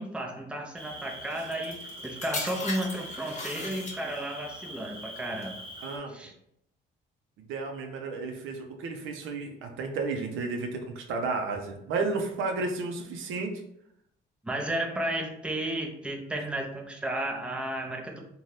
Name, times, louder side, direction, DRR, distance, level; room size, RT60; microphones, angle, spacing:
voice 1, 0.0-5.6 6.1-6.3 14.4-18.2, right 1 dB, 5° right, 1 dB, 0.5 m, -33 dB
Cricket, 0.8-6.0, right 1 dB, 25° right, 0.9 m, -43 dB
sound 1, 1.3-4.4 5.2-5.5, left 3 dB, 35° left, 0.7 m, -38 dB
voice 2, 5.8-6.1 7.5-13.6, right 3 dB, 90° right, 3 dB, 0.5 m, -32 dB
2.6 x 2.2 x 3.2 m, 0.74 s
cardioid pair, 90°, 20 cm